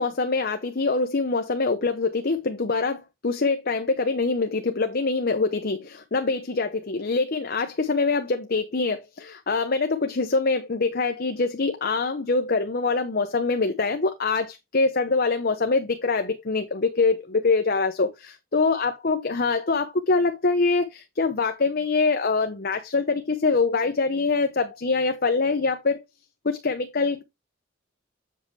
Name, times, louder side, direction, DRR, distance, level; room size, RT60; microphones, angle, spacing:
voice 1, 0.0-18.1 18.5-26.0 26.4-27.2, left 4 dB, 50° left, 0.9 m, -24 dB
7.6 x 6.8 x 3.2 m
head